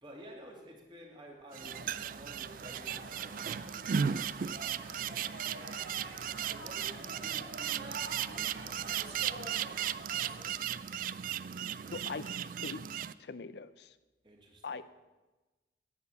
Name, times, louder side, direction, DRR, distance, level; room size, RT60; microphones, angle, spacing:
voice 1, 0.0-11.1 14.2-14.8, equal, 25° right, 0 dB, 2.3 m, -54 dB
sound 1, 1.5-13.1, right 8 dB, 45° right, 0.3 m, -36 dB
sound 2, 1.6-10.4, right 2 dB, 65° right, 2.0 m, -48 dB
voice 2, 11.9-12.8 13.2-13.9 14.6-14.8, left 4 dB, 70° left, 13 dB, 0.5 m, -41 dB
11.0 x 9.1 x 6.9 m, 1.1 s
head